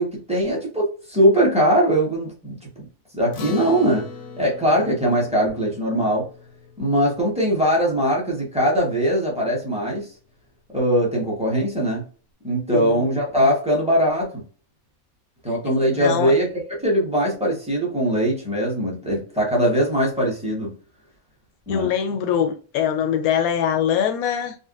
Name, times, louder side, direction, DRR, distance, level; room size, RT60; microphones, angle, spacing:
voice 1, 0.0-2.9 3.1-4.1 4.4-6.3 6.8-10.1 10.7-12.0 12.4-14.4 15.4-16.5 16.8-20.7 21.7-21.9, equal, 5° right, 0.9 m, -21 dB
Acoustic guitar, 3.3-8.0, left 4 dB, 60° left, 0.8 m, -39 dB
voice 2, 12.7-13.1 15.9-16.3 21.7-24.6, left 8 dB, 85° left, 1.1 m, -23 dB
3.8 x 2.1 x 2.4 m
omnidirectional pair, 1.5 m